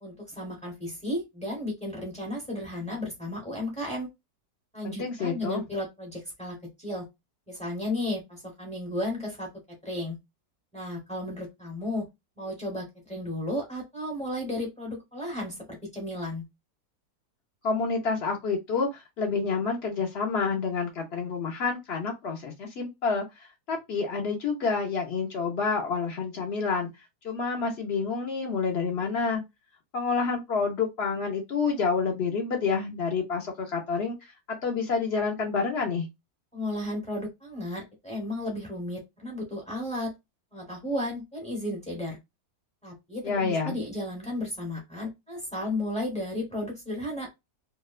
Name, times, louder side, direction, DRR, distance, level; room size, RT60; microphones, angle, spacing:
voice 1, 0.0-4.1 4.7-7.1 7.5-9.5 9.8-10.2 10.7-12.0 12.4-16.5 36.5-40.1 40.5-42.2 42.8-47.3, left 1 dB, 5° left, 0.6 m, -34 dB
voice 2, 4.8-5.6 17.6-26.9 27.2-29.4 29.9-36.1 43.2-43.8, left 5 dB, 65° left, 0.6 m, -28 dB
2.8 x 2.1 x 2.4 m
omnidirectional pair, 1.8 m